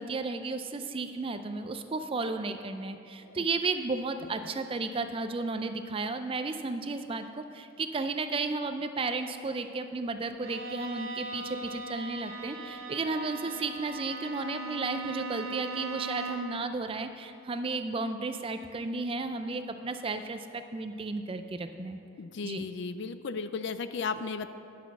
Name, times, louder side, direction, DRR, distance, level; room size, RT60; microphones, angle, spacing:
voice 1, 0.0-22.0 22.4-22.7, right 3 dB, 25° right, 8 dB, 0.4 m, -33 dB
Bowed string instrument, 10.4-16.6, right 3 dB, 80° right, 1.7 m, -39 dB
voice 2, 22.2-24.5, left 4 dB, 60° left, 11 dB, 0.4 m, -35 dB
10.5 x 5.9 x 6.0 m, 2.7 s
head